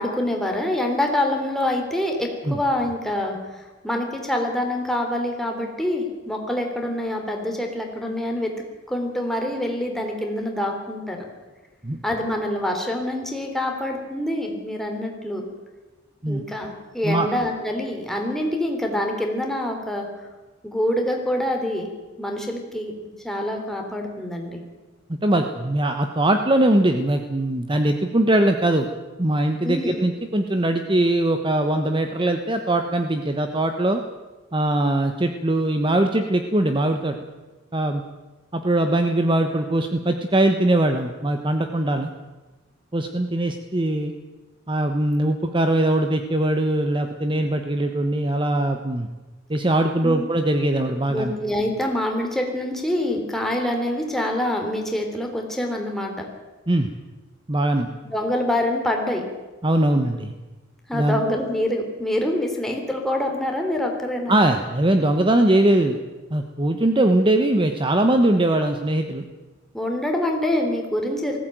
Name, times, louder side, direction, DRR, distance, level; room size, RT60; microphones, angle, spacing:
voice 1, 0.0-8.5 8.9-11.2 12.0-15.4 16.3-20.3 20.6-21.9 22.2-22.9 23.2-24.6 29.6-30.0 50.0-50.2 51.1-56.2 58.0-59.2 60.9-64.3 69.7-71.4, left 1 dB, ahead, 1 dB, 3.4 m, -26 dB
voice 2, 25.1-28.9 29.2-34.0 34.5-37.1 37.7-38.0 38.5-42.1 42.9-44.1 44.7-49.1 49.5-51.3 56.7-56.9 57.5-57.9 59.6-60.3 60.9-61.2 64.3-66.0 66.3-69.2, right 1 dB, 25° right, 6 dB, 1.1 m, -21 dB
19.5 x 16.0 x 9.2 m, 1.2 s
head